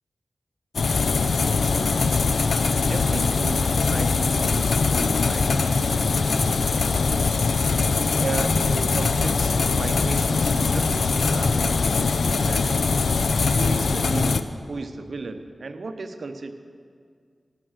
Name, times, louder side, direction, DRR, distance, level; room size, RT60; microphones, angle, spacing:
sound 1, 0.7-14.4, left 4 dB, 80° left, 0.4 m, -22 dB
voice 1, 1.6-2.2 2.9-7.5 8.2-12.9 13.3-16.5, right 3 dB, 65° right, 8 dB, 0.8 m, -35 dB
17.5 x 5.9 x 6.3 m, 2.1 s
wide cardioid pair, 85°, 0 cm